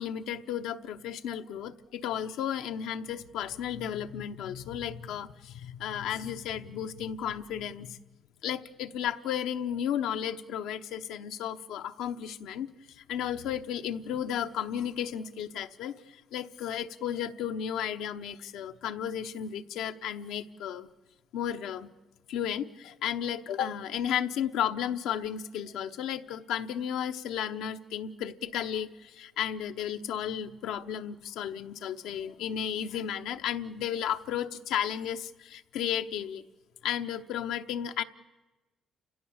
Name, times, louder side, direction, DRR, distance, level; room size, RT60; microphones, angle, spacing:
voice 1, 0.0-8.0 8.4-20.9 21.3-21.9 22.3-36.4 36.8-38.0, left 9 dB, 85° left, 7 dB, 0.9 m, -33 dB
30.0 x 16.5 x 7.3 m, 1.1 s
cardioid pair, 105°, 0 cm